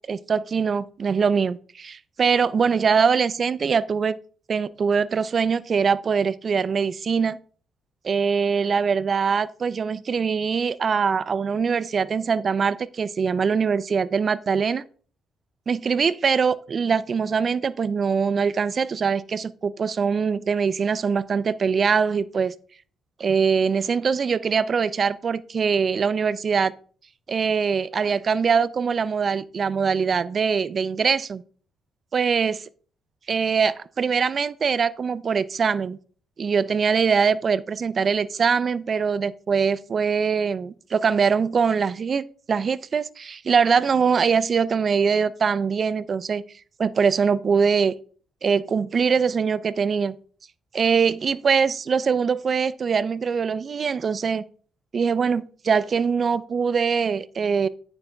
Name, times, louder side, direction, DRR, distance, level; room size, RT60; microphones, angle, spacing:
voice 1, 0.1-4.2 4.5-7.4 8.0-14.8 15.7-22.5 23.2-26.7 27.3-31.4 32.1-32.7 33.3-36.0 36.4-46.4 46.8-47.9 48.4-50.2 50.7-54.4 54.9-57.7, right 6 dB, 45° right, 0.5 m, -22 dB
9.3 x 6.9 x 3.5 m
cardioid pair, 90°, 0 cm